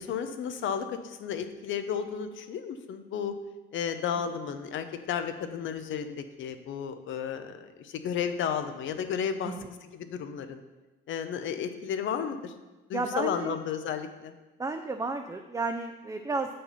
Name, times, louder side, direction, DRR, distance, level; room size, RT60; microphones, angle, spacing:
voice 1, 0.0-3.3 3.7-9.5 9.8-10.6 11.1-12.5 12.9-14.3, left 7 dB, 75° left, 9 dB, 0.7 m, -33 dB
voice 2, 12.9-13.6 14.6-16.5, right 3 dB, 15° right, 5 dB, 0.5 m, -32 dB
6.9 x 5.5 x 5.5 m, 1.1 s
cardioid pair, 90°, 20 cm